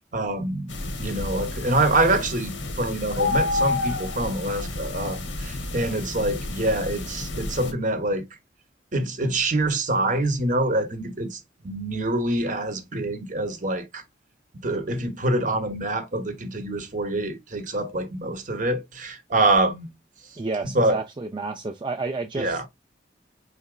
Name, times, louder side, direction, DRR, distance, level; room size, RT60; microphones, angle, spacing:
voice 1, 0.1-0.7 1.0-8.2 8.9-14.0 14.6-19.9 20.7-21.0 22.4-22.6, right 2 dB, 45° right, 0.9 m, -25 dB
sound 1, 0.7-7.7, left 2 dB, 85° left, 1.1 m, -30 dB
voice 2, 20.4-22.7, right 3 dB, 25° right, 0.4 m, -30 dB
4.9 x 4.1 x 2.3 m
head